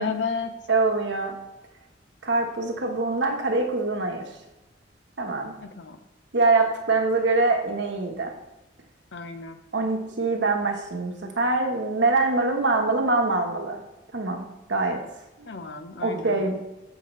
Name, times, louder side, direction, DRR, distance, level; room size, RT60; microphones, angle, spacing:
voice 1, 0.0-0.5 5.6-6.0 9.1-9.6 15.5-16.5, left 5 dB, 70° left, 7 dB, 0.7 m, -32 dB
voice 2, 0.7-1.4 2.2-4.2 5.2-5.5 6.3-8.3 9.7-13.8 14.1-15.0 16.0-16.6, right 3 dB, 70° right, 2 dB, 1.1 m, -24 dB
7.2 x 5.8 x 3.1 m, 1.0 s
head